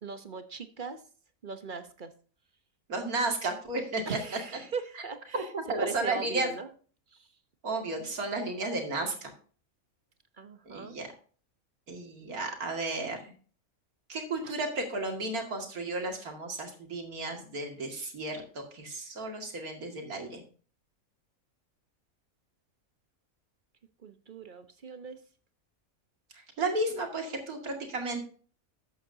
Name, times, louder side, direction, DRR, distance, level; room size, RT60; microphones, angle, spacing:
voice 1, 0.0-1.0 1.4-2.1 4.1-5.5 5.8-6.7 7.1-7.3 10.4-11.0 14.4-14.5 24.0-25.2, right 5 dB, 40° right, 9 dB, 1.0 m, -39 dB
voice 2, 2.9-4.1 5.3-6.5 7.6-9.3 10.7-11.1 11.9-13.3 14.1-20.4 26.6-28.2, right 2 dB, 85° right, 3 dB, 2.6 m, -33 dB
13.0 x 8.7 x 2.8 m, 0.41 s
omnidirectional pair, 1.5 m